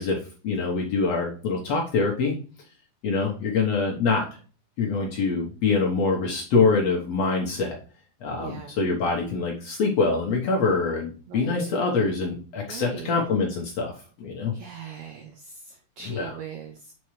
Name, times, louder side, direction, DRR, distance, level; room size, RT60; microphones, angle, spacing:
voice 1, 0.0-2.3 3.0-4.3 4.8-7.8 8.2-13.9 14.2-14.5 16.0-16.4, left 4 dB, 65° left, 0 dB, 1.7 m, -25 dB
voice 2, 8.4-8.7 11.3-11.7 12.7-13.2 14.5-16.9, right 6 dB, 90° right, 5 dB, 1.6 m, -39 dB
7.4 x 4.5 x 3.1 m, 0.39 s
omnidirectional pair, 4.2 m